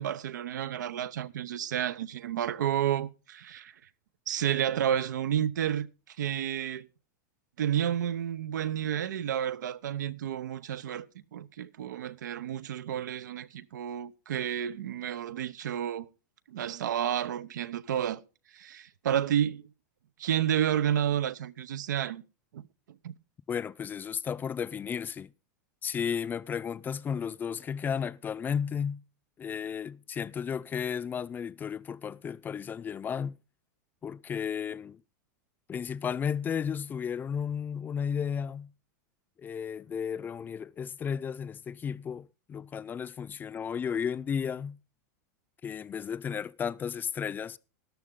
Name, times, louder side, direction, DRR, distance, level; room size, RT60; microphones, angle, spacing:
voice 1, 0.0-3.7 4.3-6.9 7.6-11.1 11.3-16.1 16.5-18.2 18.5-19.6 20.2-22.2 22.5-22.6 23.0-23.2, right 10 dB, 90° right, 0.8 m, -31 dB
voice 2, 23.5-25.3 25.8-29.0 29.4-33.4 34.0-35.0 35.7-38.7 39.4-44.8 45.6-47.6, left 7 dB, 20° left, 0.5 m, -33 dB
13.0 x 12.0 x 3.7 m
supercardioid pair, 135°, 10 cm